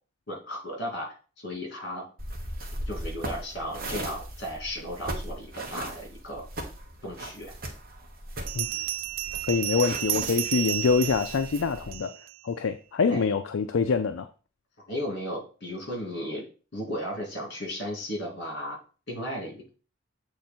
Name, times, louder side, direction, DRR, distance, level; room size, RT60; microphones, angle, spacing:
voice 1, 0.3-1.1 1.4-2.1 2.9-6.5 7.0-7.5 13.1-13.3 14.9-16.4 16.7-18.8 19.1-19.7, equal, 55° left, 0 dB, 2.6 m, -35 dB
sound 1, 2.2-11.9, right 1 dB, 45° right, 1.3 m, -38 dB
Bell, 8.5-12.4, right 14 dB, 65° right, 0.3 m, -32 dB
voice 2, 9.5-12.1 12.4-14.3, left 5 dB, 75° left, 8 dB, 0.4 m, -25 dB
8.0 x 3.4 x 4.4 m, 0.37 s
head